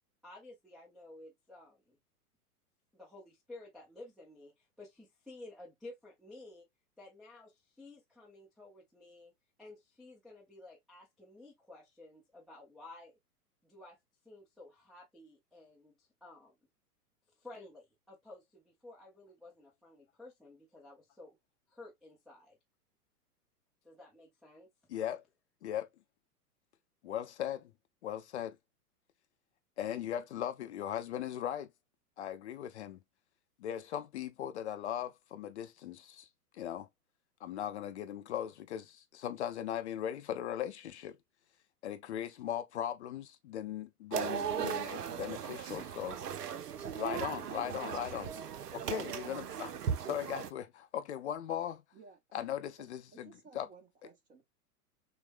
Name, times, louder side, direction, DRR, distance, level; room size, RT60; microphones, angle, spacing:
voice 1, 0.2-2.0 2.9-6.7 7.0-9.3 9.6-13.2 13.6-14.0 14.2-16.5 17.4-21.4 21.7-22.6 23.8-24.7, left 2 dB, ahead, 0.5 m, -53 dB
voice 2, 24.9-25.2 25.6-25.9 27.0-27.7 28.0-28.6 29.8-31.7 32.2-33.0 33.6-36.3 36.5-36.9 37.4-41.2 41.8-46.2 46.9-48.3 48.7-51.8 52.3-53.7, left 10 dB, 50° left, 0.5 m, -38 dB
sound 1, 44.1-50.5, right 7 dB, 75° right, 0.6 m, -37 dB
voice 3, 51.9-52.5 52.8-54.4, right 4 dB, 15° right, 0.9 m, -58 dB
6.1 x 2.1 x 2.3 m
figure-of-eight pair, 105°, 47 cm